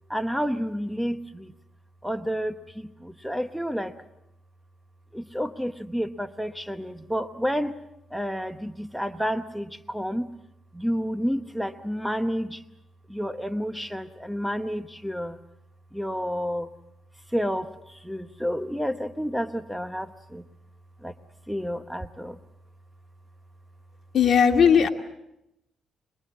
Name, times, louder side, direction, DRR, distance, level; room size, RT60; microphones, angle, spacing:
voice 1, 0.1-1.5 2.0-3.9 5.1-7.8 8.1-10.3 10.7-12.6 13.1-15.4 15.9-16.7 17.3-20.4 21.0-21.1 21.5-22.4, equal, ahead, 10 dB, 0.9 m, -30 dB
voice 2, 24.1-24.9, left 7 dB, 55° left, 4 dB, 2.1 m, -17 dB
24.0 x 22.0 x 7.4 m, 0.85 s
cardioid pair, 90°, 0 cm